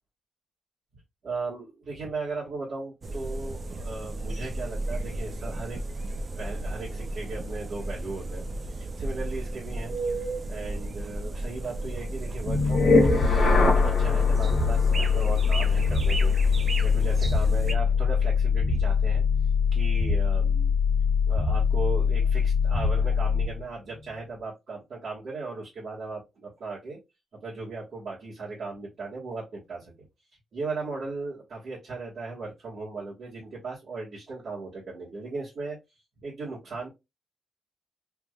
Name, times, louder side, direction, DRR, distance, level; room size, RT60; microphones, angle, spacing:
voice 1, 1.2-5.8 6.4-10.0 10.5-19.2 19.7-20.7 21.3-27.0 27.3-29.9 30.5-35.8 36.2-36.9, right 3 dB, 60° right, -8 dB, 1.7 m, -37 dB
sound 1, 3.0-17.7, right 2 dB, 35° right, 0.4 m, -33 dB
sound 2, 12.4-23.6, left 5 dB, 45° left, 1.1 m, -22 dB
3.5 x 2.9 x 2.3 m, 0.23 s
wide cardioid pair, 140°, 0 cm